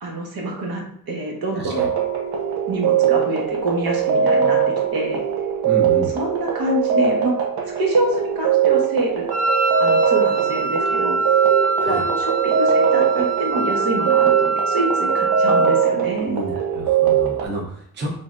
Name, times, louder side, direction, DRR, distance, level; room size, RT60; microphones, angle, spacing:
voice 1, 0.0-1.9 2.7-4.6 4.9-5.2 6.1-7.3 7.6-9.2 9.8-11.2 11.8-16.3, right 1 dB, 75° right, -1 dB, 1.2 m, -25 dB
voice 2, 1.6-1.9 5.6-6.1 11.8-12.0 16.2-18.1, right 1 dB, 30° right, -1 dB, 0.6 m, -30 dB
sound 1, 1.8-17.5, right 8 dB, 90° right, 0.7 m, -21 dB
Wind instrument woodwind instrument, 9.3-15.9, right 2 dB, 20° left, 0.7 m, -24 dB
3.8 x 3.2 x 2.5 m, 0.64 s
wide cardioid pair, 160°, 37 cm